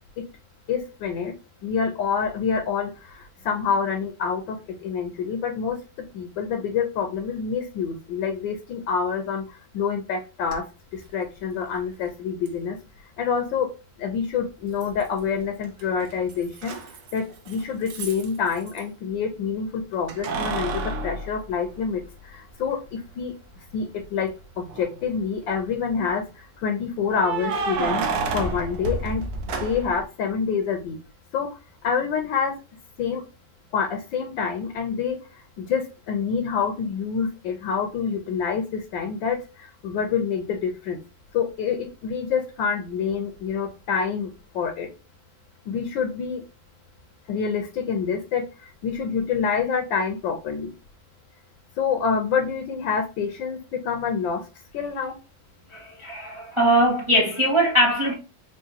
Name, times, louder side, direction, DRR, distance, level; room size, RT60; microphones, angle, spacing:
voice 1, 0.7-1.3 1.6-4.6 4.8-5.8 6.1-9.4 9.7-10.6 10.9-12.8 13.2-13.7 14.0-16.7 17.1-23.3 23.7-28.0 28.3-29.2 29.6-31.0 31.3-31.5 31.8-32.6 33.0-33.2 33.7-35.2 35.6-39.4 39.8-41.0 41.3-44.9 45.7-46.4 47.3-48.5 48.8-50.7 51.8-54.4 54.7-55.1, left 6 dB, 75° left, 1.3 m, -27 dB
Keys jangling, 10.5-10.6 12.5-12.6 14.8-15.3 15.6-18.8 20.1-22.2 22.7-22.8 24.6-25.1 27.1-30.0, right 4 dB, 65° right, 1.0 m, -30 dB
voice 2, 55.7-58.1, right 1 dB, 50° right, 0.3 m, -21 dB
4.7 x 2.7 x 2.8 m
omnidirectional pair, 2.2 m